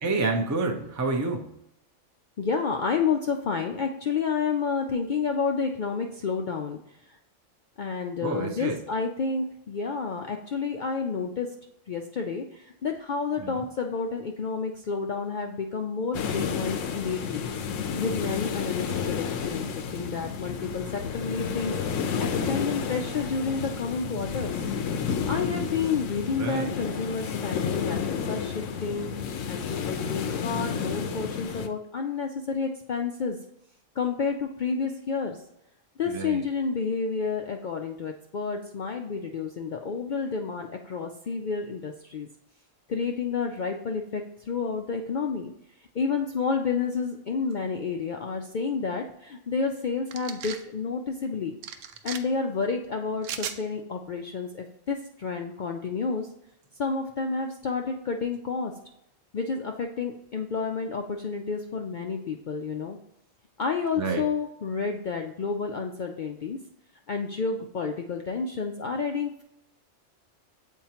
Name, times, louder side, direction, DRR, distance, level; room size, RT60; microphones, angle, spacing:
voice 1, 0.0-1.5 8.2-8.8 13.4-13.6 26.4-26.7 36.1-36.4 63.9-64.3, right 3 dB, 20° right, 3 dB, 0.5 m, -28 dB
voice 2, 2.4-6.8 7.1-7.2 7.8-11.5 11.9-17.5 17.8-21.7 22.2-24.6 25.3-29.1 29.5-33.4 34.0-35.4 36.0-42.3 42.9-45.5 45.9-51.6 52.0-56.3 56.8-58.7 59.3-63.0 63.6-66.6 67.1-69.4, left 5 dB, 65° left, 3 dB, 0.5 m, -30 dB
sound 1, 16.1-31.7, left 6 dB, 80° left, 1.0 m, -31 dB
sound 2, 50.1-50.6 51.6-52.2 53.2-53.6, right 8 dB, 75° right, 0.9 m, -36 dB
7.5 x 4.5 x 2.9 m, 0.80 s
omnidirectional pair, 1.3 m